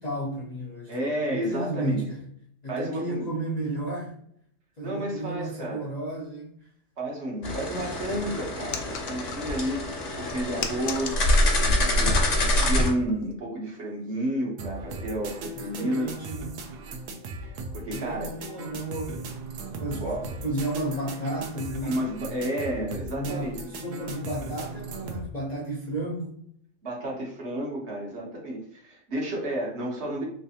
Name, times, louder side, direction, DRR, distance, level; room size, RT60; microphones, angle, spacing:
voice 1, 0.0-2.2 2.6-4.1 4.8-6.5 15.6-16.6 17.9-19.2 19.8-22.0 23.2-26.3, right 1 dB, 45° left, -4 dB, 0.6 m, -33 dB
voice 2, 0.9-2.1 2.7-3.3 4.8-5.9 7.0-11.2 11.6-16.1 17.4-18.3 20.0-20.3 21.8-23.7 26.8-30.2, right 1 dB, 60° right, -2 dB, 1.2 m, -31 dB
sound 1, 7.4-12.9, left 1 dB, 70° left, 1.2 m, -25 dB
sound 2, 8.7-9.8 10.3-11.8 12.1-12.5 13.1-13.3, left 7 dB, 85° left, 1.0 m, -37 dB
sound 3, 14.6-25.3, right 3 dB, 75° right, 1.0 m, -38 dB
3.2 x 3.2 x 2.7 m, 0.69 s
omnidirectional pair, 1.4 m